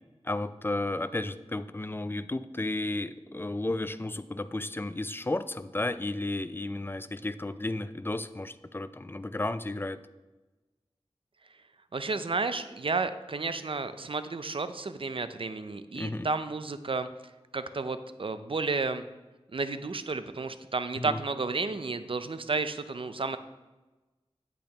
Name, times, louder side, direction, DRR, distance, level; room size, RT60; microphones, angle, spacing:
voice 1, 0.2-10.0 16.0-16.3 21.0-21.2, left 2 dB, 20° left, 13 dB, 0.4 m, -33 dB
voice 2, 11.9-17.1 17.5-19.0 19.5-23.4, right 3 dB, 55° right, 11 dB, 0.5 m, -32 dB
8.6 x 8.5 x 2.9 m, 1.1 s
wide cardioid pair, 55°, 11 cm